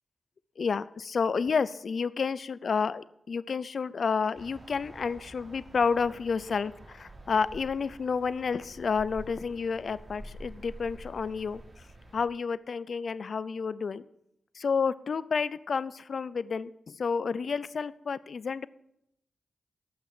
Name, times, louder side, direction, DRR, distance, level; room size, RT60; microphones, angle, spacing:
voice 1, 0.6-11.6 12.1-14.0 14.6-18.7, left 5 dB, 65° left, 17 dB, 0.5 m, -30 dB
sound 1, 4.3-12.2, right 1 dB, 40° right, 3.5 m, -48 dB
14.5 x 6.0 x 7.6 m, 0.77 s
cardioid pair, 60°, 0 cm